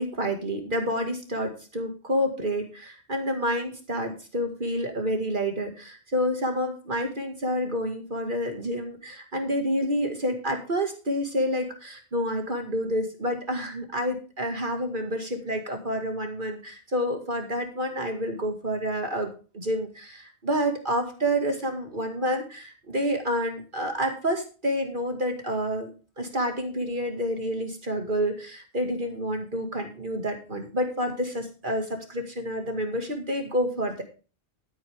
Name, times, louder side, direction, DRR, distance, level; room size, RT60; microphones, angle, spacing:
voice 1, 0.0-25.9 26.2-34.0, equal, 50° right, 4 dB, 2.3 m, -29 dB
13.0 x 9.0 x 3.6 m, 0.34 s
omnidirectional pair, 1.1 m